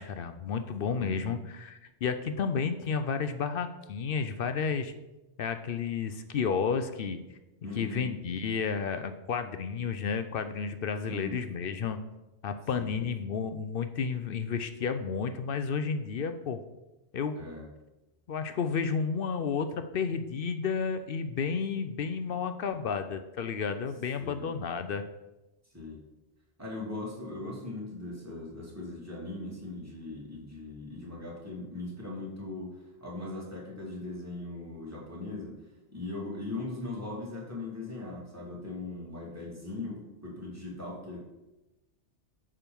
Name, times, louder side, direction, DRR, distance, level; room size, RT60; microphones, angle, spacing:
voice 1, 0.0-4.9 5.4-7.2 7.8-12.0 12.4-16.6 17.1-17.5 18.3-25.0, left 6 dB, 60° left, 9 dB, 0.7 m, -31 dB
voice 2, 0.9-1.3 7.6-8.0 11.1-11.4 12.7-13.0 17.4-17.7 24.2-24.5 25.7-26.0 26.6-35.5 35.9-41.2, left 2 dB, 15° right, -5 dB, 2.4 m, -39 dB
8.9 x 3.7 x 6.9 m, 1.0 s
omnidirectional pair, 1.2 m